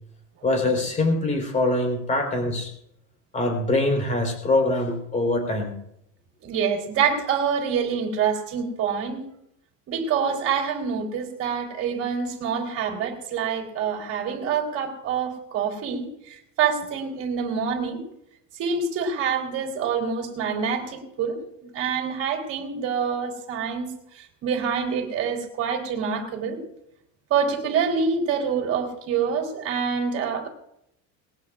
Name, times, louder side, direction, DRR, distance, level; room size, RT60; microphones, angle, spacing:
voice 1, 0.4-2.7 3.3-5.7, left 2 dB, 20° left, 2 dB, 4.1 m, -23 dB
voice 2, 6.4-9.2 9.9-18.0 18.6-23.9 24.4-26.6 27.3-30.5, right 6 dB, 35° right, 1 dB, 3.8 m, -26 dB
20.0 x 19.0 x 2.5 m, 0.77 s
cardioid pair, 160°, 39 cm